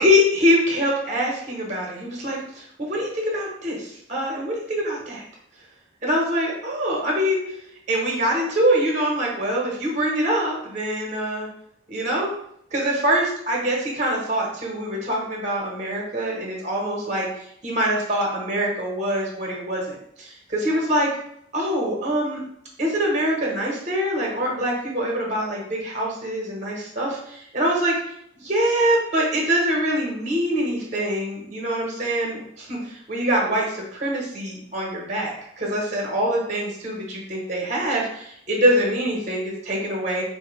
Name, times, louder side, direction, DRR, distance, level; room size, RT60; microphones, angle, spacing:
voice 1, 0.0-5.2 6.0-7.4 7.9-11.5 11.9-12.3 12.7-17.3 17.6-21.1 21.5-22.4 22.8-27.9 28.4-40.2, equal, 40° right, -2 dB, 0.9 m, -24 dB
4.1 x 2.1 x 3.0 m, 0.70 s
head